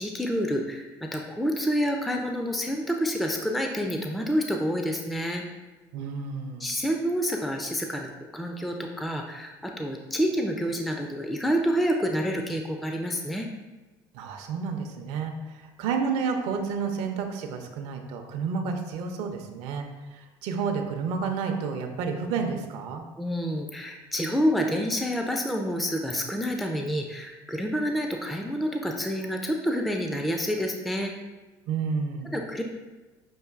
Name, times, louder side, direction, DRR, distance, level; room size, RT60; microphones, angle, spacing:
voice 1, 0.0-5.4 6.6-13.5 23.2-31.1 32.3-32.6, equal, ahead, 2 dB, 0.3 m, -28 dB
voice 2, 5.9-6.7 14.1-23.0 31.7-32.3, right 5 dB, 75° right, 4 dB, 0.5 m, -30 dB
6.2 x 2.5 x 2.4 m, 1.2 s
supercardioid pair, 100°, 11 cm